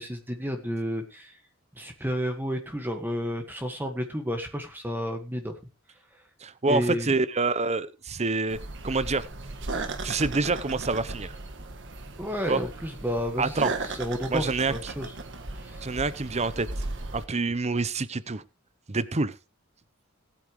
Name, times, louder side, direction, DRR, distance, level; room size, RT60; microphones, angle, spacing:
voice 1, 0.0-1.3 1.7-5.5 6.7-7.2 12.2-15.1 15.5-15.9, equal, 10° right, 4 dB, 1.6 m, -31 dB
voice 2, 6.4-8.6 8.8-9.2 10.0-11.3 12.5-12.6 13.4-13.7 14.3-14.7 15.8-16.7 17.1-18.4 18.9-19.3, right 3 dB, 30° right, 16 dB, 0.8 m, -27 dB
sound 1, 8.5-17.3, right 2 dB, 60° right, 1.7 m, -36 dB
19.5 x 8.7 x 3.2 m, 0.29 s
head